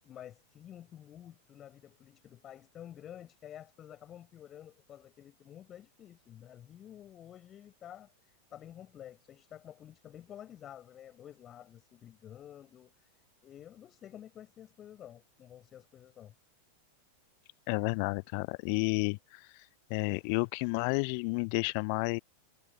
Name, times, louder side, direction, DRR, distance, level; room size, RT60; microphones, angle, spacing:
voice 1, 0.0-16.3, left 11 dB, 30° left, 6.7 m, -51 dB
voice 2, 17.7-19.5 19.9-22.2, left 37 dB, 45° left, 0.7 m, -31 dB
figure-of-eight pair, 90°, 0 cm